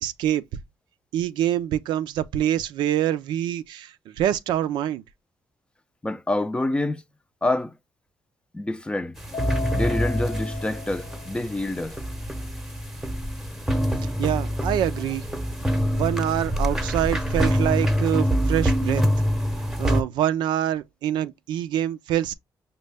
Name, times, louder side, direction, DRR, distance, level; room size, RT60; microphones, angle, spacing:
voice 1, 0.0-0.4 1.1-5.0 14.2-15.2 15.9-19.0 19.8-22.3, right 11 dB, 85° right, 0.4 m, -25 dB
voice 2, 6.0-7.0 7.4-7.7 8.5-9.1 9.7-12.0, left 2 dB, 15° left, 0.5 m, -27 dB
sound 1, 9.2-20.0, equal, 5° right, 0.8 m, -25 dB
Keyboard (musical), 9.3-11.8, left 4 dB, 80° left, 0.7 m, -37 dB
5.3 x 2.2 x 3.3 m
cardioid pair, 80°, 7 cm